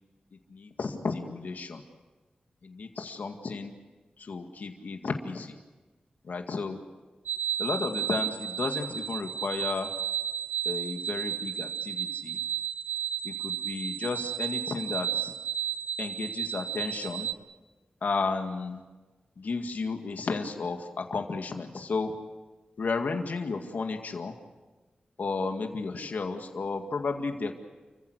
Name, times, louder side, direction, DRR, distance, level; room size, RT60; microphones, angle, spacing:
voice 1, 0.5-1.8 2.6-3.7 4.2-5.5 6.3-6.8 7.6-9.9 10.7-12.4 13.2-15.3 16.0-17.3 18.0-18.8 19.4-22.1 22.8-24.3 25.2-27.5, left 4 dB, 70° left, 4 dB, 2.0 m, -33 dB
sound 1, 7.3-17.3, right 9 dB, 80° right, 0.8 m, -33 dB
30.0 x 15.5 x 8.2 m, 1.2 s
wide cardioid pair, 115°, 3 cm